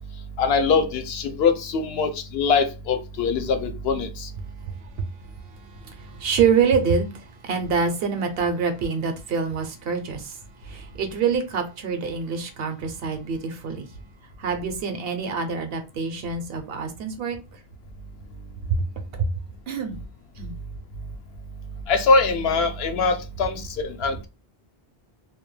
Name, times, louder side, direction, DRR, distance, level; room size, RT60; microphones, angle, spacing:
voice 1, 0.4-4.3 21.9-24.3, left 4 dB, 80° left, 0.8 m, -22 dB
voice 2, 4.7-5.1 5.6-13.9 14.4-17.4 18.7-18.8 19.1-19.3 19.7-20.0 20.4-20.6, right 5 dB, 70° right, 0.8 m, -26 dB
2.2 x 2.1 x 3.1 m
omnidirectional pair, 1.0 m